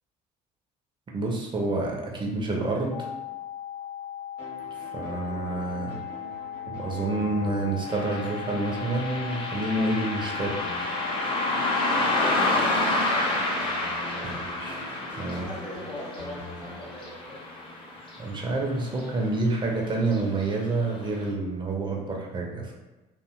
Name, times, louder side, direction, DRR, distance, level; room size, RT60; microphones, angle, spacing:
voice 1, 1.1-3.1 4.7-5.9 6.7-10.6 14.6-14.8 15.2-15.5 18.2-22.7, right 2 dB, 25° right, -1 dB, 0.5 m, -28 dB
sound 1, 2.9-12.8, left 10 dB, 50° left, 0.9 m, -38 dB
sound 2, 4.4-17.9, equal, 80° right, 0.7 m, -44 dB
Car passing by, 7.9-18.7 19.0-19.1 20.0-20.2 20.7-20.8 21.3-21.4, left 2 dB, 25° left, 0.6 m, -29 dB
voice 2, 12.4-13.3 14.1-14.4 15.3-17.4, left 1 dB, 85° left, -6 dB, 0.6 m, -41 dB
2.6 x 2.1 x 2.3 m, 1.1 s
figure-of-eight pair, 55°, 21 cm